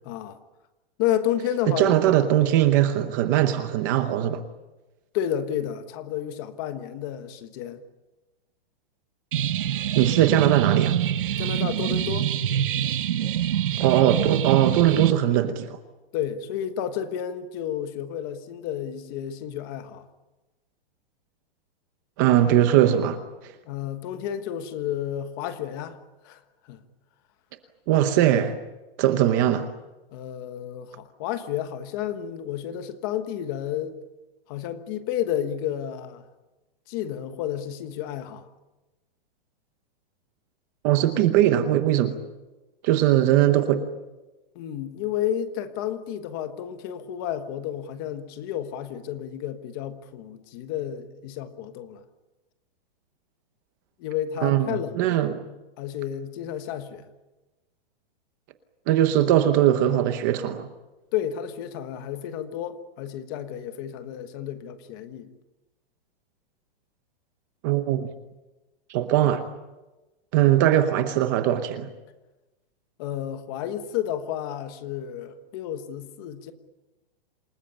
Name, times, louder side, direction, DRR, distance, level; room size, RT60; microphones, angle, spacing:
voice 1, 0.0-0.4 1.0-2.0 5.1-7.8 11.4-12.3 16.1-20.1 23.7-26.0 26.2-26.4 26.7-26.8 30.1-34.0 34.5-36.2 36.9-38.5 44.5-52.0 54.0-55.2 55.8-57.1 61.1-65.3 73.0-76.5, left 10 dB, 25° left, 1.3 m, -31 dB
voice 2, 1.7-4.4 10.0-11.0 13.8-15.8 22.2-23.5 27.9-28.6 29.0-29.7 40.8-42.1 42.8-43.8 54.4-55.4 58.9-60.7 67.6-68.1 68.9-69.4 70.3-71.9, right 12 dB, 20° right, 0.9 m, -20 dB
sound 1, 9.3-15.1, right 10 dB, 65° right, 1.3 m, -25 dB
28.0 x 19.5 x 8.8 m
hypercardioid pair, 180°, 29 cm